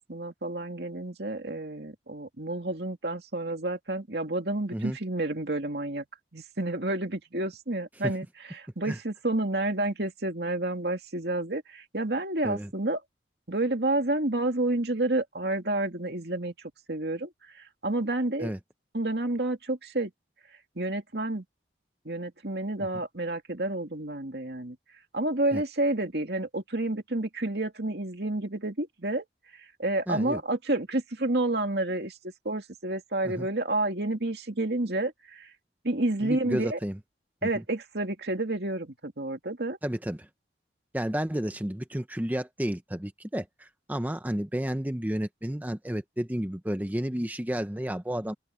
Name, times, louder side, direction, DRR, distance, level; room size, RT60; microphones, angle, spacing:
voice 1, 0.1-6.0 6.3-8.3 8.6-13.0 13.5-16.5 16.9-18.5 18.9-20.1 20.8-21.4 22.0-24.8 25.1-29.2 29.8-32.2 32.4-35.5 35.8-36.8 37.4-39.8, right 2 dB, 65° right, 2.6 m, -30 dB
voice 2, 30.1-30.4 33.2-33.5 36.2-37.0 37.4-37.6 39.8-40.3 40.9-48.3, equal, 10° right, 0.7 m, -31 dB
open air
head